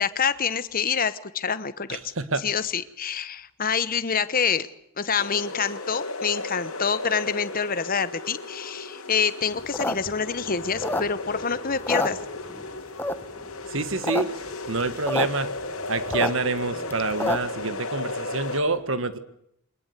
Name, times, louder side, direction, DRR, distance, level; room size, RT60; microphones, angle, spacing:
voice 1, 0.0-2.1 2.4-4.7 5.0-12.2, left 6 dB, 40° left, 14 dB, 1.0 m, -26 dB
voice 2, 1.9-2.4 13.7-14.4 14.7-15.5 15.9-19.2, right 3 dB, 60° right, 12 dB, 1.7 m, -27 dB
sound 1, 5.2-18.6, left 2 dB, 70° left, 2.9 m, -35 dB
sound 2, 9.6-11.4 11.7-12.6 13.0-13.4 13.8-14.2 14.5-14.6 14.7-15.3 15.6-17.6, left 1 dB, 10° left, 1.0 m, -28 dB
23.5 x 20.0 x 8.2 m, 0.75 s
head